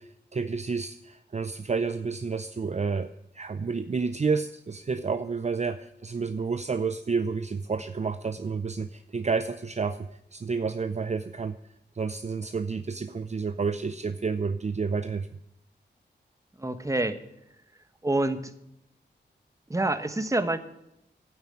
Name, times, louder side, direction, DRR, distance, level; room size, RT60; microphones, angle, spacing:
voice 1, 0.0-11.6 11.9-15.3, right 5 dB, 40° right, 10 dB, 0.6 m, -30 dB
voice 2, 16.6-17.2 18.0-18.5 19.7-20.6, right 2 dB, 15° right, 9 dB, 1.2 m, -27 dB
13.0 x 9.4 x 8.7 m, 0.83 s
wide cardioid pair, 85°, 19 cm